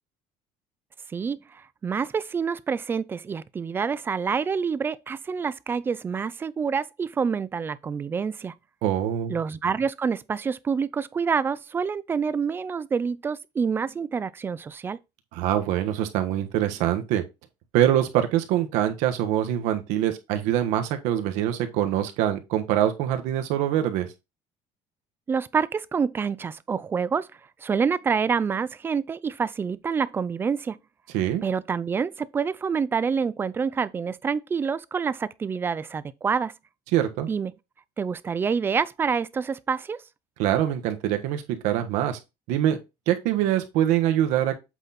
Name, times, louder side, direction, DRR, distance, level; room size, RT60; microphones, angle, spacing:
voice 1, 1.1-8.5 9.3-15.0 25.3-27.3 27.6-30.8 31.4-36.5 37.3-37.5 38.0-40.0, right 6 dB, 20° right, 0.3 m, -27 dB
voice 2, 8.8-9.4 15.3-17.2 17.7-24.1 31.1-31.4 36.9-37.3 40.4-42.2 42.5-42.8 43.1-44.6, right 11 dB, 80° right, 1.3 m, -24 dB
8.1 x 4.0 x 4.2 m
cardioid pair, 160°, 12 cm